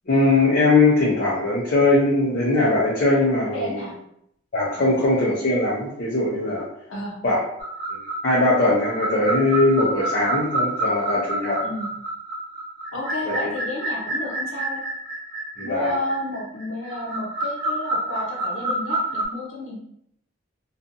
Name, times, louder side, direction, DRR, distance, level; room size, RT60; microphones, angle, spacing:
voice 1, 0.1-3.8 4.5-6.7 7.2-7.4 7.9-11.6 13.3-13.4 15.6-15.9, left 2 dB, 50° left, -7 dB, 0.5 m, -20 dB
voice 2, 3.4-3.9 4.8-5.0 6.9-7.2 11.6-11.9 12.9-14.8 15.6-19.8, left 1 dB, 90° left, -3 dB, 0.7 m, -31 dB
sound 1, 7.6-19.2, right 1 dB, 45° right, 0.6 m, -28 dB
2.6 x 2.3 x 2.6 m, 0.73 s
head